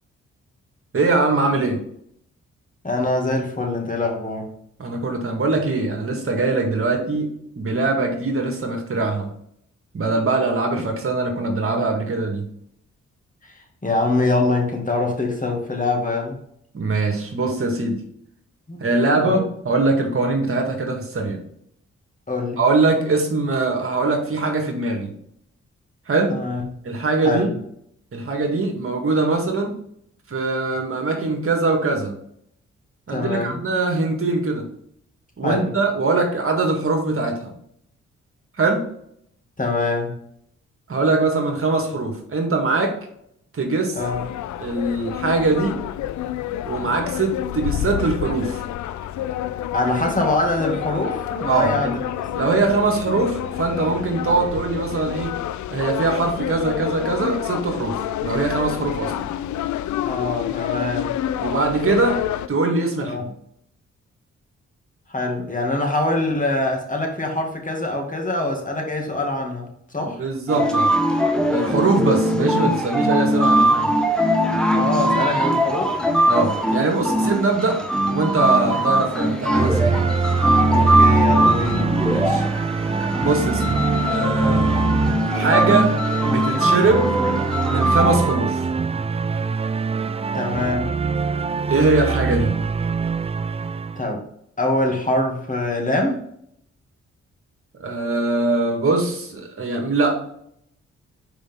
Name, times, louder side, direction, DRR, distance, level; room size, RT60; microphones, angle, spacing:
voice 1, 0.9-1.8 4.8-9.3 9.9-12.5 16.7-18.0 18.8-21.4 22.6-25.1 26.1-26.4 26.8-27.5 28.1-29.8 30.3-32.2 33.1-34.7 35.4-37.5 38.6-38.9 40.9-43.0 43.5-44.0 44.6-45.8 46.7-48.6 51.4-52.0 52.3-55.4 55.7-59.3 61.4-62.2 62.5-63.3 70.0-71.0 71.5-74.0 76.3-77.8 78.1-80.1 82.1-82.5 83.2-84.9 85.3-85.9 86.3-87.1 87.7-88.7 91.7-92.6 97.8-100.2, right 3 dB, 50° right, 2 dB, 1.8 m, -22 dB
voice 2, 2.8-4.5 13.8-16.4 18.7-18.8 19.2-19.4 22.3-22.6 26.3-26.6 27.2-27.5 33.1-33.6 35.4-35.6 39.6-40.2 43.9-44.2 49.7-51.9 52.4-52.5 60.1-61.1 63.0-63.2 65.1-69.7 69.9-70.2 74.7-76.0 80.7-81.9 90.3-90.9 94.0-94.2 94.6-96.2, left 2 dB, 25° left, 1 dB, 2.2 m, -24 dB
sound 1, 44.0-62.5, left 12 dB, 75° left, 0.4 m, -28 dB
sound 2, 70.5-88.3, right 1 dB, 5° left, 1.2 m, -21 dB
sound 3, 79.5-94.0, right 5 dB, 20° right, 0.4 m, -24 dB
5.2 x 5.0 x 3.7 m, 0.69 s
supercardioid pair, 50°, 29 cm